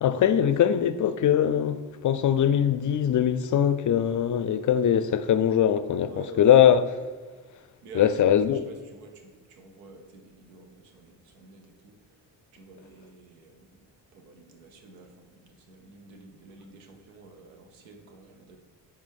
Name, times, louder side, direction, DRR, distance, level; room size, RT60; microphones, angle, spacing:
voice 1, 0.0-6.8 7.9-8.6, left 9 dB, 40° left, 0.4 m, -22 dB
voice 2, 6.1-6.4 7.8-12.0 12.5-18.6, right 3 dB, 90° right, 0.8 m, -49 dB
9.8 x 3.5 x 3.5 m
hypercardioid pair, 45°, 47 cm